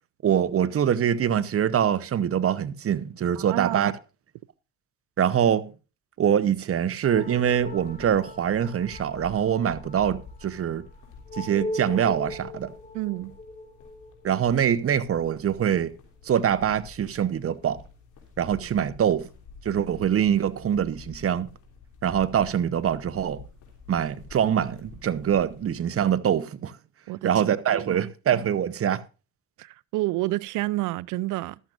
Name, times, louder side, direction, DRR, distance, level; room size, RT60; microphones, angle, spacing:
voice 1, 0.2-3.9 5.2-5.7 6.2-10.9 11.3-12.7 14.2-15.9 16.2-17.8 18.4-19.3 19.6-21.5 22.0-23.4 23.9-26.8 27.2-29.0, right 9 dB, 50° right, 0.9 m, -24 dB
voice 2, 3.4-3.9 12.9-13.4 27.1-27.3 27.7-28.1 29.6-31.6, right 18 dB, 85° right, 0.5 m, -29 dB
sound 1, 7.0-25.7, left 4 dB, 90° left, 3.3 m, -49 dB
sound 2, 7.0-15.9, left 1 dB, 30° left, 2.7 m, -40 dB
14.0 x 12.0 x 2.5 m
cardioid pair, 90°, 30 cm